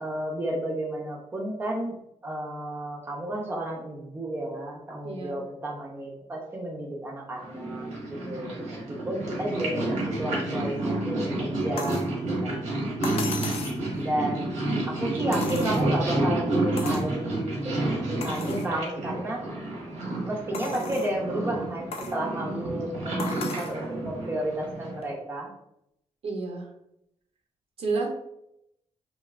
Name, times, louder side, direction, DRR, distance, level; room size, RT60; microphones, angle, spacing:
voice 1, 0.0-2.0 2.2-8.8 9.1-12.6 14.0-14.5 14.8-19.4 20.2-25.5, right 1 dB, 20° right, -2 dB, 0.5 m, -32 dB
voice 2, 5.0-5.4 12.3-12.6 26.2-26.7 27.8-28.1, right 3 dB, 60° right, 1 dB, 0.6 m, -31 dB
Purr, 7.4-25.1, right 1 dB, 85° right, 1.1 m, -30 dB
sound 1, 11.8-12.1 13.0-13.8 15.3-16.1 16.8-17.1 17.6-17.7 18.2-18.7 19.3-19.4 20.5-21.2 21.9-22.2 23.2-23.8 25.0-25.1, left 4 dB, 60° left, 0.4 m, -36 dB
3.1 x 2.6 x 2.4 m, 0.79 s
wide cardioid pair, 145°, 12 cm